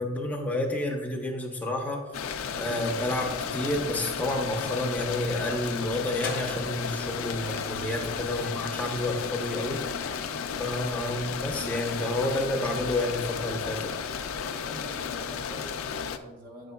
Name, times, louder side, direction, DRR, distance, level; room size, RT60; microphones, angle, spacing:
voice 1, 0.0-2.1 2.6-10.0 10.6-13.9, left 1 dB, 10° left, 0 dB, 0.7 m, -30 dB
sound 1, 2.1-16.2, left 6 dB, 85° left, 0.4 m, -34 dB
sound 2, 6.1-12.5, left 4 dB, 50° left, 0.7 m, -42 dB
voice 2, 14.5-16.7, equal, 45° right, -1 dB, 1.0 m, -45 dB
8.8 x 6.5 x 2.3 m, 1.2 s
head